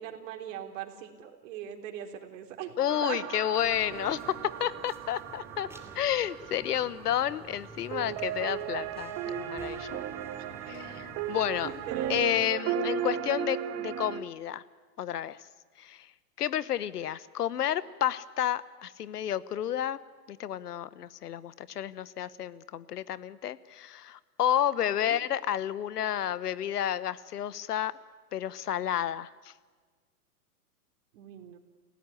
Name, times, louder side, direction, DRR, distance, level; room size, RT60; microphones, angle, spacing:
voice 1, 0.0-2.7 3.0-3.2 10.4-10.5 11.6-12.3 24.9-25.2 31.1-31.6, right 10 dB, 55° right, 5 dB, 3.7 m, -40 dB
voice 2, 2.8-4.3 4.6-5.7 5.9-10.0 10.7-11.7 12.1-14.6 15.0-15.4 15.8-16.1 16.4-20.0 20.3-27.9 28.3-29.5, left 11 dB, 75° left, 17 dB, 1.2 m, -31 dB
sound 1, 2.9-14.2, right 9 dB, 30° right, 1.8 m, -36 dB
sound 2, 3.6-12.4, right 2 dB, 5° right, 2.8 m, -50 dB
29.0 x 17.0 x 10.0 m, 1.4 s
hypercardioid pair, 115°, 47 cm